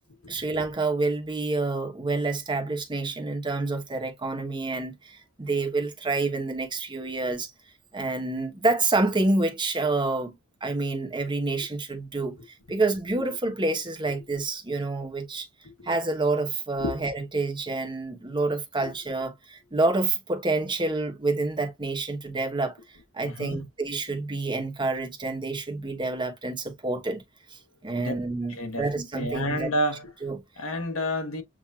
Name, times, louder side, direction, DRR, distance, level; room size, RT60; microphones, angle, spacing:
voice 1, 0.3-7.5 7.9-10.3 10.6-12.3 12.7-15.5 15.8-22.7 23.1-27.2 27.5-29.7 30.2-30.4, right 3 dB, 25° right, 1.0 m, -28 dB
voice 2, 23.2-23.7 28.0-28.1 28.5-30.1 30.6-31.4, equal, 75° left, 1.1 m, -30 dB
7.4 x 2.6 x 2.3 m
head